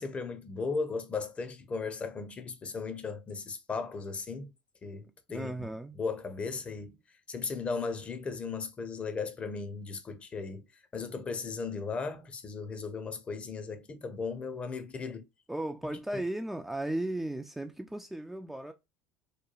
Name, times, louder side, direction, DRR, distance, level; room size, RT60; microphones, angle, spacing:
voice 1, 0.0-4.5 4.8-5.5 5.9-7.0 7.3-10.7 10.9-15.2 16.1-16.2, left 4 dB, 30° left, 0.6 m, -36 dB
voice 2, 5.3-6.0 15.5-18.7, right 1 dB, 5° right, 0.3 m, -35 dB
3.0 x 2.2 x 2.2 m
hypercardioid pair, 80°, 4 cm